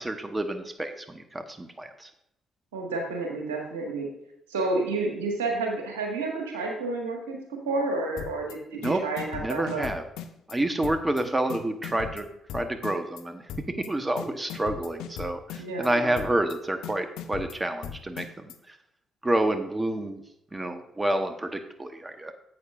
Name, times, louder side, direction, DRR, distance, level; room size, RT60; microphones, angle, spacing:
voice 1, 0.0-2.1 8.8-9.0 9.3-10.0 10.5-12.3 12.5-13.5 13.9-18.8 19.2-20.2 20.5-22.3, right 1 dB, 20° right, 7 dB, 1.1 m, -29 dB
voice 2, 2.7-4.1 4.5-7.4 7.6-9.8 15.6-16.0, right 3 dB, 85° right, 0 dB, 1.7 m, -30 dB
sound 1, 8.2-8.5 8.8-10.6 10.8-11.2 11.5-13.2 13.5-13.9 14.2-15.9 16.2-16.6 16.8-18.6, left 9 dB, 70° left, 0.6 m, -38 dB
10.5 x 8.3 x 2.5 m, 0.77 s
hypercardioid pair, 45°, 0 cm